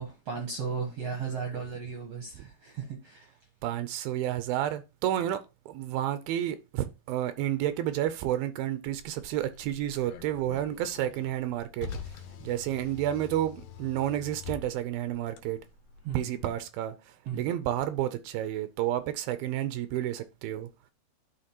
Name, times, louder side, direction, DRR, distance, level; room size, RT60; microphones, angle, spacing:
voice 1, 0.0-3.3 16.0-16.3 17.2-17.5, right 6 dB, 65° right, 1.6 m, -35 dB
voice 2, 3.6-15.6 16.1-20.7, right 12 dB, 85° right, 2.5 m, -31 dB
Car, 8.8-16.5, left 6 dB, 80° left, 2.7 m, -45 dB
11.5 x 4.2 x 2.9 m
omnidirectional pair, 4.2 m